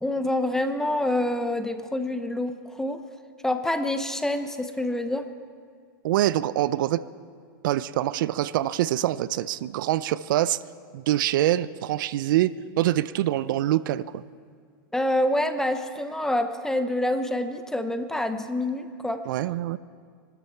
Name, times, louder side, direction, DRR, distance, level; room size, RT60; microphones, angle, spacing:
voice 1, 0.0-3.0 3.4-5.3 14.9-19.2, left 1 dB, 5° left, 8 dB, 0.7 m, -27 dB
voice 2, 6.0-7.0 7.6-10.6 10.9-12.5 12.8-14.2 19.3-19.8, right 14 dB, 65° right, 17 dB, 0.5 m, -24 dB
24.5 x 13.0 x 4.5 m, 2.1 s
hypercardioid pair, 130°, 12 cm